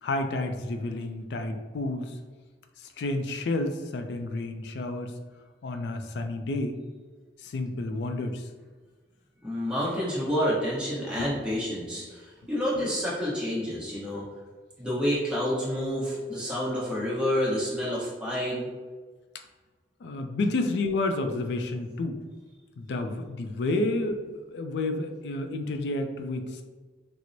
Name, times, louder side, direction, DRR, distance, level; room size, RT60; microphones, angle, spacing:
voice 1, 0.0-2.2 2.8-5.1 5.6-6.8 7.4-8.5 11.2-11.4 12.7-12.9 20.0-22.2 22.8-26.6, left 2 dB, 75° left, 6 dB, 0.3 m, -30 dB
voice 2, 9.4-14.2 14.8-18.7, equal, 5° right, -7 dB, 0.8 m, -29 dB
4.4 x 2.0 x 2.6 m, 1.4 s
head